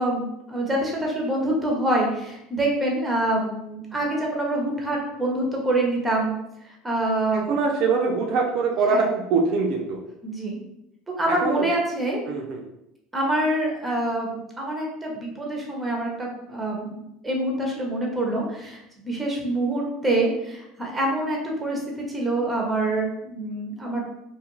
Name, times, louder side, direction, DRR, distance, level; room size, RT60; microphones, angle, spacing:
voice 1, 0.0-6.3 6.8-7.5 8.9-9.1 10.2-10.6 11.1-12.2 13.1-14.3 14.6-24.1, right 1 dB, 10° right, -2 dB, 0.7 m, -26 dB
voice 2, 7.5-10.0 11.3-11.7 12.2-12.7, right 4 dB, 55° right, 1 dB, 0.4 m, -23 dB
2.4 x 2.2 x 3.0 m, 0.84 s
supercardioid pair, 130°, 0 cm